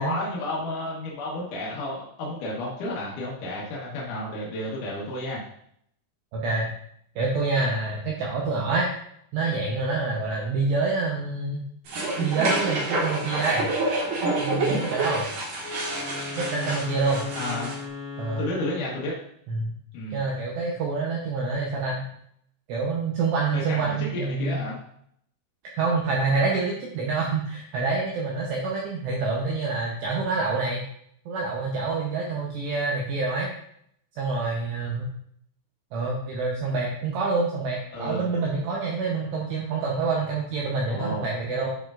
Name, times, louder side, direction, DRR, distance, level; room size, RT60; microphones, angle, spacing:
voice 1, 0.0-5.4 17.3-17.7 18.4-19.1 19.9-20.2 23.5-24.8 37.9-38.2 40.9-41.2, left 1 dB, 75° left, -4 dB, 1.9 m, -31 dB
voice 2, 6.3-6.7 7.2-8.9 9.3-11.6 12.2-13.7 14.4-15.3 16.4-17.3 18.2-18.5 19.5-19.7 20.1-22.1 22.7-24.6 25.7-30.9 31.3-33.5 34.2-35.1 35.9-41.7, right 3 dB, 75° right, -2 dB, 2.6 m, -27 dB
sound 1, 11.9-17.8, right 2 dB, 60° right, 2.4 m, -28 dB
Wind instrument woodwind instrument, 15.6-19.3, left 4 dB, 55° left, 2.0 m, -37 dB
10.5 x 5.3 x 2.5 m, 0.69 s
omnidirectional pair, 5.9 m